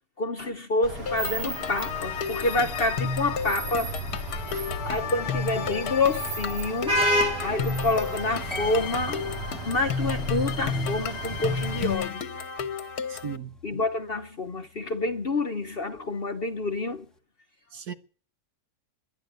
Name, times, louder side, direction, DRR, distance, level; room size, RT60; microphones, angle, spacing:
voice 1, 0.2-3.9 4.8-7.0 7.4-9.3 9.6-12.2 13.6-17.0, left 2 dB, 40° left, 1.0 m, -28 dB
Vehicle horn car horn honking / Traffic noise roadway noise, 0.8-11.9, equal, 85° right, 4.2 m, -32 dB
sound 1, 1.1-13.4, left 5 dB, 65° left, 1.6 m, -32 dB
sound 2, 5.2-16.2 16.5-16.9, equal, ahead, 1.1 m, -45 dB
voice 2, 13.1-13.5 17.7-17.9, right 7 dB, 65° right, 1.7 m, -36 dB
12.0 x 10.5 x 9.3 m
omnidirectional pair, 1.8 m